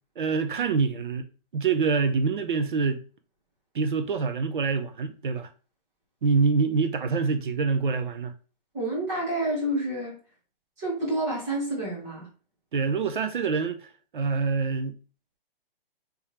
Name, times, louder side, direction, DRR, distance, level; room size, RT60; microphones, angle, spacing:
voice 1, 0.2-1.3 1.5-3.0 3.7-5.5 6.2-8.3 12.7-15.0, right 5 dB, 60° right, 0.6 m, -26 dB
voice 2, 8.7-10.1 10.8-12.3, right 1 dB, 15° right, 1.2 m, -28 dB
3.5 x 3.2 x 2.8 m
hypercardioid pair, 175°, 29 cm